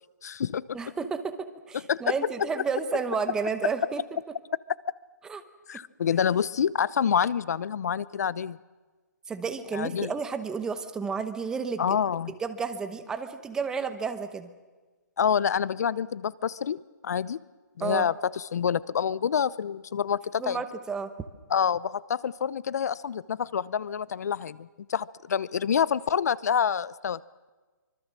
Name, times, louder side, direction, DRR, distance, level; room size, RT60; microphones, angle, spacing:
voice 1, 0.2-0.8 1.9-2.1 3.6-3.7 5.7-8.6 9.7-10.1 11.8-12.3 15.2-16.8 17.0-17.4 17.8-20.6 21.5-27.2, left 7 dB, 55° left, 21 dB, 0.7 m, -27 dB
voice 2, 0.7-4.0 5.2-5.4 5.7-5.8 9.3-12.0 12.4-14.5 17.8-18.1 20.4-21.1, right 5 dB, 5° right, 10 dB, 0.9 m, -31 dB
25.0 x 24.5 x 7.5 m, 1.3 s
hypercardioid pair, 165°, 10 cm